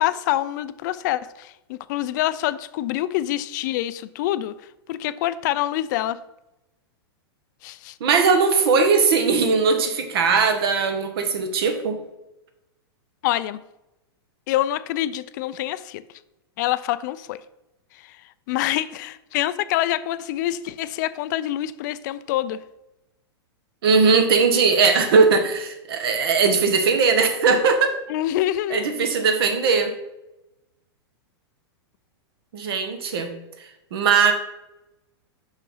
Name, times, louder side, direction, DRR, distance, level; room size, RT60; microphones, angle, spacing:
voice 1, 0.0-4.5 4.9-6.2 7.6-7.9 13.2-13.6 14.5-16.0 16.6-17.4 18.0-18.2 18.5-22.6 28.1-28.9, left 14 dB, 45° left, 0.4 m, -26 dB
voice 2, 8.0-12.0 23.8-27.9 28.7-29.9 32.5-33.3 33.9-34.3, right 5 dB, 65° right, 1.4 m, -19 dB
5.9 x 5.6 x 5.5 m
supercardioid pair, 150°, 14 cm